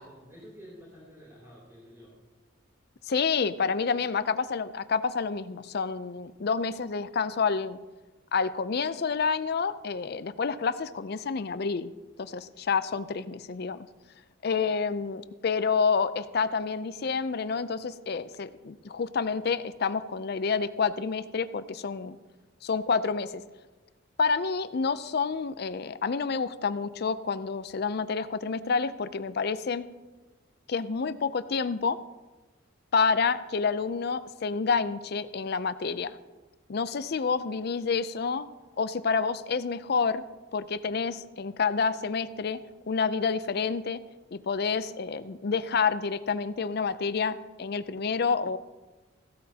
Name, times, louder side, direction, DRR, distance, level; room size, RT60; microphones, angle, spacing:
voice 1, 0.0-2.1, equal, 15° right, -7 dB, 3.0 m, -50 dB
voice 2, 3.1-7.8 8.3-11.9 12.2-13.9 14.4-22.2 22.6-23.4 24.2-29.9 30.7-32.0 32.9-36.2 36.7-38.5 38.8-40.2 40.5-42.6 42.9-44.0 44.3-48.6, left 5 dB, 50° left, 14 dB, 0.5 m, -28 dB
16.0 x 12.5 x 2.8 m, 1.2 s
head